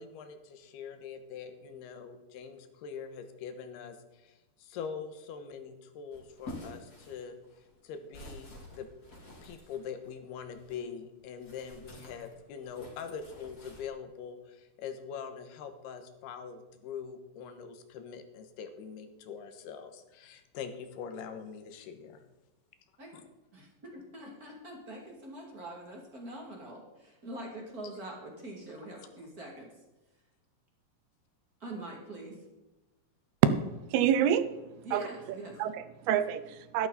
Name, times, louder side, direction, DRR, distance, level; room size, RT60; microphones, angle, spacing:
voice 1, 0.0-8.9 9.4-22.2, left 6 dB, 85° left, 8 dB, 3.1 m, -43 dB
sound 1, 6.1-10.9 11.4-13.9, left 1 dB, 25° left, 3.4 m, -49 dB
voice 2, 23.9-29.7 31.6-32.4 34.8-35.6, right 1 dB, 30° right, -1 dB, 2.3 m, -44 dB
voice 3, 33.9-34.5 34.9-35.0 35.6-36.9, right 9 dB, 80° right, 13 dB, 2.6 m, -28 dB
12.5 x 12.5 x 4.1 m, 1.0 s
omnidirectional pair, 4.6 m